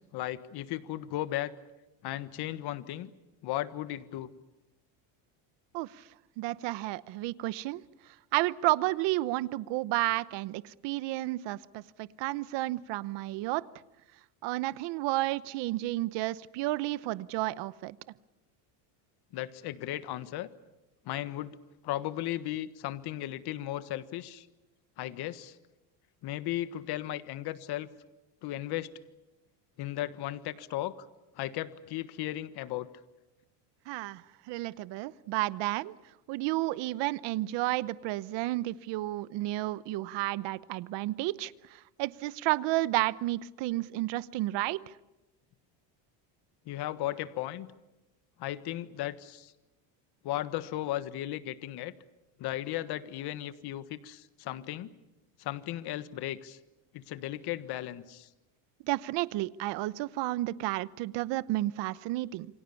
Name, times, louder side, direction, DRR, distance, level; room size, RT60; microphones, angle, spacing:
voice 1, 0.0-1.5 2.0-3.1 3.4-4.3 19.3-20.5 21.0-21.6 21.8-24.5 25.0-25.5 26.2-27.9 28.4-28.9 29.8-31.1 31.4-32.9 46.7-47.7 48.4-49.5 50.2-51.9 52.4-54.9 55.4-56.6 56.9-58.3, left 14 dB, 55° left, 13 dB, 1.4 m, -36 dB
voice 2, 6.4-7.8 8.3-13.6 14.4-18.0 33.9-34.2 34.5-35.9 36.3-44.8 58.9-62.5, right 18 dB, 65° right, 17 dB, 1.0 m, -31 dB
28.5 x 25.0 x 7.1 m, 0.99 s
cardioid pair, 135°, 46 cm